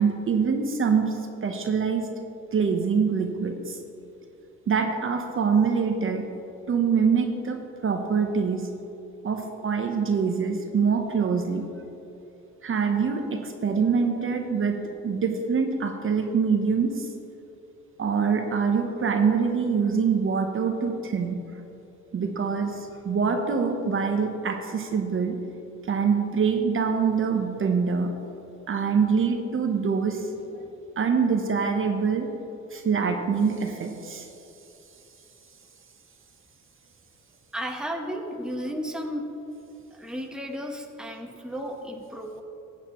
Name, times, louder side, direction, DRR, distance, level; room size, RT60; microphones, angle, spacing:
voice 1, 0.0-2.1 2.5-3.8 4.7-6.3 6.7-8.7 9.2-11.7 12.6-17.1 18.0-21.4 22.1-25.4 25.9-28.1 28.7-30.3 31.0-32.3 32.7-34.3, right 5 dB, 45° right, 4 dB, 0.9 m, -25 dB
voice 2, 37.5-39.2 39.9-42.4, equal, 5° right, 2 dB, 1.1 m, -33 dB
14.5 x 8.8 x 3.1 m, 2.9 s
cardioid pair, 90°, 30 cm